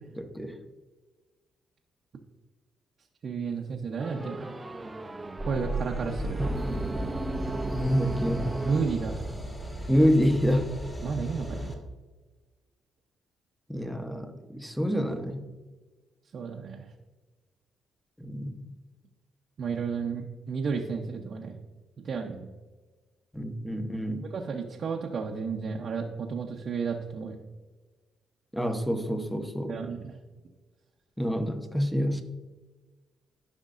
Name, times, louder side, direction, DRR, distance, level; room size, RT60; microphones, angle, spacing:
voice 1, 0.2-0.6 7.7-8.5 9.9-10.7 13.7-15.5 18.2-18.6 23.3-24.3 28.5-29.8 31.2-32.2, equal, ahead, 7 dB, 0.9 m, -27 dB
voice 2, 3.2-4.6 5.4-6.4 8.6-9.4 11.0-11.8 16.3-16.9 19.6-21.6 22.0-22.5 24.2-27.5 29.7-30.2, right 5 dB, 55° right, 0 dB, 0.7 m, -32 dB
sound 1, 4.0-9.6, right 2 dB, 20° right, 0.6 m, -35 dB
sound 2, 5.4-11.7, equal, 15° left, 1.6 m, -36 dB
12.0 x 5.2 x 2.5 m, 1.3 s
cardioid pair, 90°, 0 cm